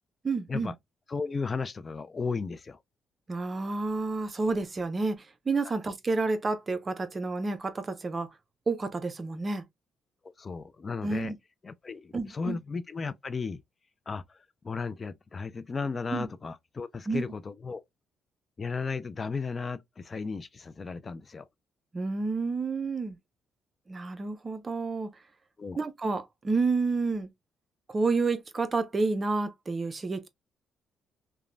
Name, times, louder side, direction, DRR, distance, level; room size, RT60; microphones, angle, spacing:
voice 1, 0.2-0.7 3.3-8.3 8.7-9.6 11.0-11.4 12.1-12.6 16.1-16.3 17.1-17.2 21.9-23.2 23.9-25.1 25.8-27.3 27.9-30.3, right 3 dB, 30° right, 0.6 m, -30 dB
voice 2, 1.1-2.8 10.4-11.3 11.6-13.6 14.1-17.8 18.6-21.4 25.6-25.8, left 4 dB, 35° left, 0.3 m, -35 dB
3.0 x 2.2 x 2.5 m
cardioid pair, 90°, 0 cm